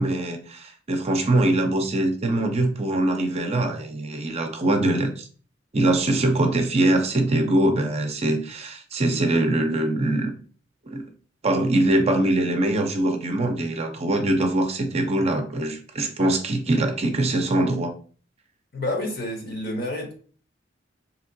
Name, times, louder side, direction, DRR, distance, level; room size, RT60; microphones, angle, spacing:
voice 1, 0.0-5.2 5.7-10.3 10.9-11.0 11.4-17.9, right 1 dB, 35° right, 0.5 m, -23 dB
voice 2, 18.7-20.1, left 1 dB, 55° left, 1.0 m, -29 dB
3.6 x 2.8 x 2.6 m
head